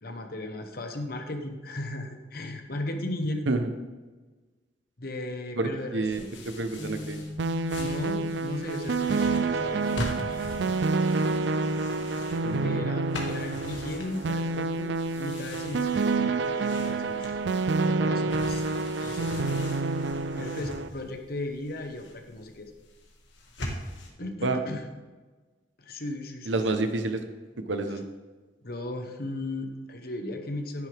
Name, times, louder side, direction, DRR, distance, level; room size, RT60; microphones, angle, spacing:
voice 1, 0.0-3.5 5.0-6.3 7.8-10.4 12.4-17.3 17.8-19.6 20.3-22.7 24.2-24.8 25.8-26.8 28.6-30.9, left 1 dB, 55° left, 5 dB, 1.2 m, -36 dB
voice 2, 5.6-7.2 12.4-12.8 24.4-24.6 26.5-27.2 27.6-28.1, right 2 dB, 85° right, 7 dB, 1.0 m, -29 dB
sound 1, 6.1-24.1, left 1 dB, 80° left, 1.9 m, -42 dB
sound 2, 6.8-18.8, left 2 dB, 10° right, 3.8 m, -45 dB
sound 3, 7.4-20.9, right 3 dB, 70° right, 0.4 m, -28 dB
11.0 x 9.8 x 3.5 m, 1.3 s
head